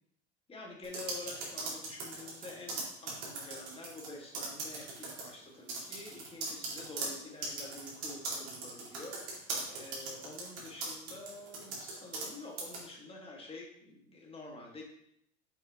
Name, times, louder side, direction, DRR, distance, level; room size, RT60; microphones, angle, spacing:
voice 1, 0.5-14.8, left 2 dB, 15° left, -1 dB, 1.9 m, -48 dB
sound 1, 0.8-4.1 4.3-5.3 5.7-12.3 12.6-12.8, right 3 dB, 60° right, 2.3 m, -39 dB
6.4 x 5.3 x 3.0 m, 0.74 s
hypercardioid pair, 95°, 35 cm